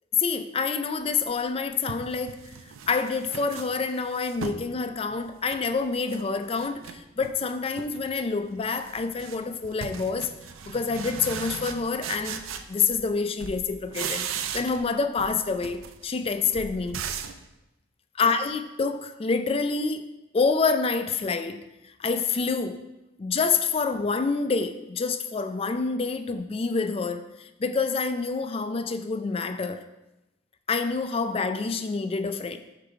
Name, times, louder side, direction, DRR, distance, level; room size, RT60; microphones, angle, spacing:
voice 1, 0.2-2.4 2.9-10.3 10.6-12.4 12.7-17.0 18.2-20.0 20.3-22.8 23.2-29.8 30.7-32.6, left 4 dB, 30° left, 9 dB, 0.3 m, -27 dB
sound 1, 1.2-1.3 1.9-4.7 5.1-6.2 6.5-7.4 7.7-8.1 8.4-13.1 13.4-14.9 15.2-17.4, right 7 dB, 90° right, 0.5 m, -37 dB
6.4 x 3.9 x 4.7 m, 0.98 s
head